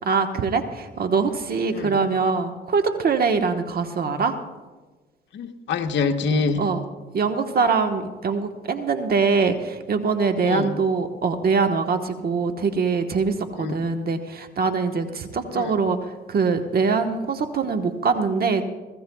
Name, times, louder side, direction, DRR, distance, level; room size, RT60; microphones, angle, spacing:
voice 1, 0.0-4.3 6.6-6.8 7.1-18.6, right 5 dB, 50° right, 6 dB, 1.2 m, -23 dB
voice 2, 5.3-6.7 10.4-10.7 13.6-13.8 15.5-15.7, left 4 dB, 65° left, 3 dB, 1.0 m, -25 dB
22.0 x 15.5 x 2.3 m, 1.2 s
cardioid pair, 90°, 20 cm